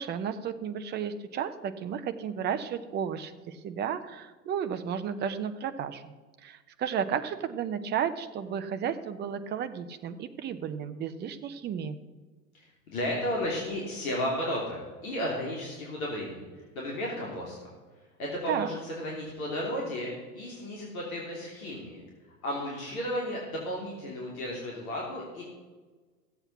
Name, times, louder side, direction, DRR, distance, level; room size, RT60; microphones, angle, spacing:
voice 1, 0.0-6.1 6.4-12.0 18.5-18.7, right 8 dB, 20° right, 10 dB, 0.8 m, -33 dB
voice 2, 12.5-17.7 18.0-22.0 22.4-25.4, equal, 60° left, -3 dB, 3.3 m, -34 dB
15.5 x 8.0 x 5.9 m, 1.3 s
figure-of-eight pair, 95°, 48 cm